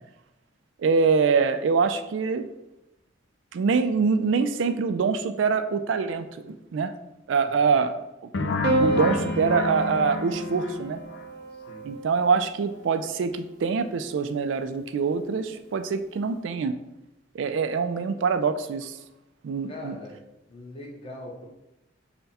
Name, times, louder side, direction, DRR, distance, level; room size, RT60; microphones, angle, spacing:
voice 1, 0.8-2.4 3.5-6.9 7.3-7.9 8.8-11.0 11.8-16.8 17.3-19.0 19.4-20.0, right 5 dB, 80° right, 9 dB, 0.4 m, -24 dB
voice 2, 7.4-7.8 11.7-11.9 19.7-20.2 20.5-21.5, left 2 dB, 30° left, -2 dB, 1.0 m, -41 dB
sound 1, 8.3-11.2, left 3 dB, 70° left, 0.5 m, -30 dB
Piano, 8.6-13.1 14.3-15.0, right 2 dB, 65° right, 0.8 m, -31 dB
5.6 x 2.2 x 4.1 m, 0.91 s
head